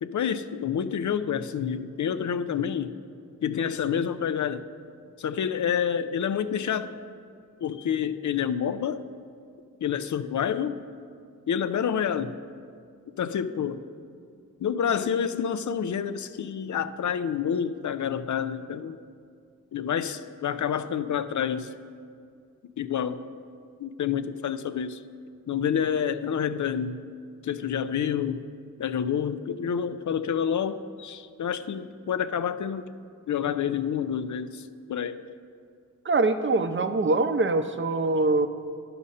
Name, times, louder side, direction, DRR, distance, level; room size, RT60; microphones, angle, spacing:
voice 1, 0.0-3.0 3.4-4.6 5.2-6.9 7.6-9.1 9.8-10.8 11.5-12.4 13.2-13.8 14.6-19.0 19.7-21.7 22.8-23.3 23.8-25.0 25.5-27.0 27.4-28.5 28.8-32.9 33.3-35.2, left 8 dB, 60° left, 12 dB, 0.5 m, -28 dB
voice 2, 36.0-38.5, right 3 dB, 35° right, 9 dB, 0.6 m, -23 dB
11.0 x 4.2 x 6.4 m, 2.3 s
cardioid pair, 45°, 34 cm